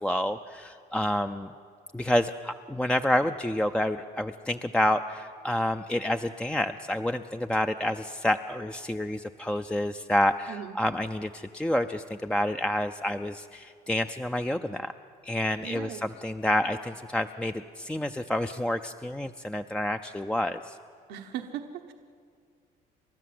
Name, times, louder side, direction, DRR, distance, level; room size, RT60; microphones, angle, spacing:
voice 1, 0.0-1.5 1.9-14.9 15.2-20.8, left 1 dB, 5° left, 7 dB, 0.5 m, -28 dB
voice 2, 15.6-16.0 21.1-21.9, right 10 dB, 90° right, 4 dB, 1.2 m, -38 dB
30.0 x 13.0 x 7.8 m, 2.3 s
cardioid pair, 110°, 17 cm